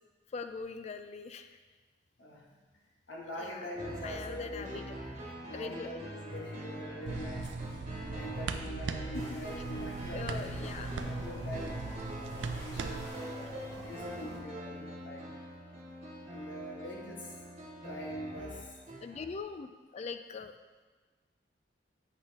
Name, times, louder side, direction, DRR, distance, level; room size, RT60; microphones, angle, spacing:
voice 1, 0.3-1.6 3.4-3.7 4.0-5.0 5.2-5.9 9.1-9.2 10.1-10.9 19.0-20.5, left 4 dB, 35° left, 9 dB, 0.3 m, -42 dB
voice 2, 2.2-2.6 3.1-4.9 5.4-7.5 8.0-10.8 11.1-11.8 12.3-15.3 16.3-17.4 17.8-18.8, equal, 85° left, -2 dB, 1.4 m, -43 dB
sound 1, 3.7-19.4, equal, 35° right, 1.5 m, -44 dB
sound 2, 7.1-13.1, right 4 dB, 75° right, 0.4 m, -39 dB
sound 3, 9.1-14.4, equal, 15° left, 1.6 m, -49 dB
7.8 x 5.9 x 2.8 m, 1.3 s
head